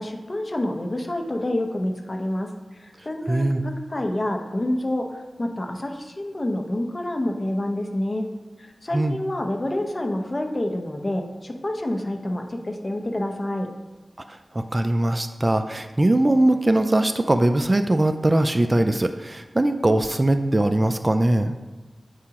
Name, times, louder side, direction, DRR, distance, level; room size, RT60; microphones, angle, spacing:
voice 1, 0.0-2.5 2.8-5.1 5.4-8.3 8.6-13.7, left 1 dB, 35° left, 4 dB, 0.7 m, -28 dB
voice 2, 3.3-3.6 8.9-9.2 14.3-21.5, right 1 dB, 30° right, 9 dB, 0.3 m, -21 dB
8.2 x 4.8 x 2.9 m, 1.2 s
wide cardioid pair, 60°, 0 cm